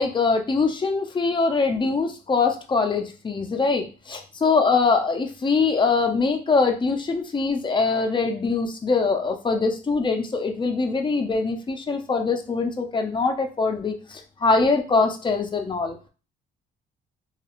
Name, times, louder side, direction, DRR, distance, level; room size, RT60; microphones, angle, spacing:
voice 1, 0.0-16.0, left 4 dB, 25° left, 4 dB, 0.5 m, -23 dB
2.4 x 2.3 x 3.0 m, 0.35 s
cardioid pair, 90°, 20 cm